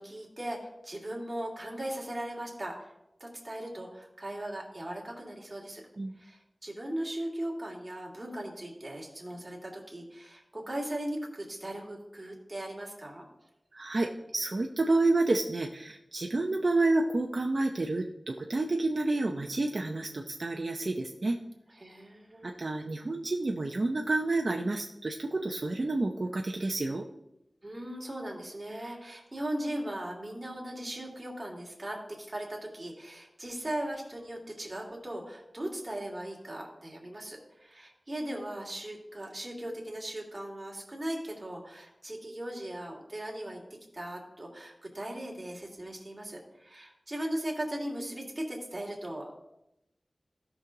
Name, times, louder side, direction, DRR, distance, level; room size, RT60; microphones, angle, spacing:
voice 1, 0.0-2.9 3.2-5.8 6.2-13.2 21.8-22.6 27.6-43.6 43.9-49.4, right 1 dB, 30° right, -2 dB, 3.0 m, -38 dB
voice 2, 13.7-21.4 22.4-27.0, right 2 dB, 55° right, 2 dB, 0.7 m, -29 dB
16.5 x 6.2 x 3.9 m, 0.87 s
wide cardioid pair, 80°, 0 cm